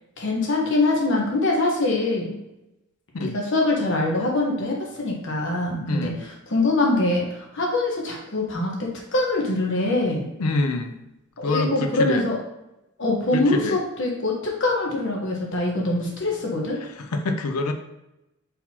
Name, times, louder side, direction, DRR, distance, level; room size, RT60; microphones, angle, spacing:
voice 1, 0.2-2.4 3.2-8.7 9.1-10.3 11.4-12.4 13.0-16.8, left 2 dB, 55° left, -1 dB, 1.0 m, -23 dB
voice 2, 5.8-6.2 10.4-10.9 11.4-12.3 13.3-13.8 17.0-17.7, left 2 dB, 85° left, 7 dB, 0.5 m, -26 dB
4.3 x 4.0 x 2.8 m, 0.91 s
head